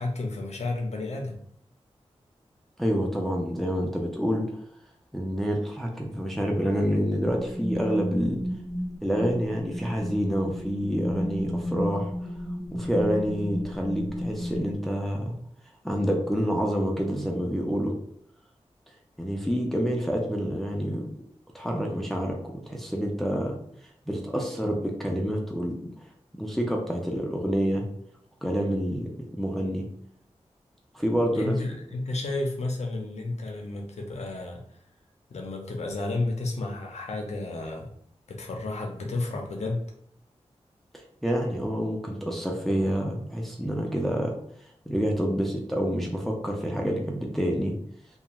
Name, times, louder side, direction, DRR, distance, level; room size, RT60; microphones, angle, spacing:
voice 1, 0.0-1.4 31.3-34.6 35.3-37.9 38.3-39.8, left 2 dB, 80° left, 1 dB, 0.6 m, -31 dB
voice 2, 2.8-4.5 5.1-8.4 9.0-12.1 12.7-15.4 15.8-17.9 19.2-21.1 21.5-23.6 24.1-25.8 26.3-27.9 28.4-29.9 30.9-31.6 41.2-44.4 44.9-47.8, equal, ahead, 0 dB, 0.5 m, -27 dB
sound 1, 7.2-14.7, equal, 80° right, 1.1 m, -32 dB
2.4 x 2.3 x 3.0 m, 0.68 s
wide cardioid pair, 95°, 11 cm